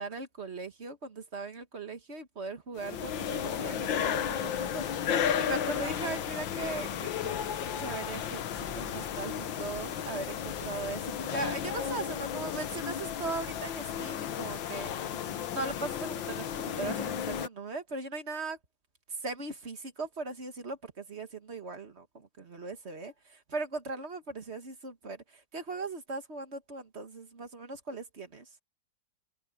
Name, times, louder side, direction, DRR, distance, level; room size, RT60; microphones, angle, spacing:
voice 1, 0.0-14.9 15.2-18.6 19.1-28.5, right 3 dB, 35° right, 1.7 m, -39 dB
sound 1, 2.8-17.5, left 9 dB, 80° left, 1.8 m, -34 dB
sound 2, 2.9-14.0, equal, 5° left, 3.3 m, -53 dB
omnidirectional pair, 2.1 m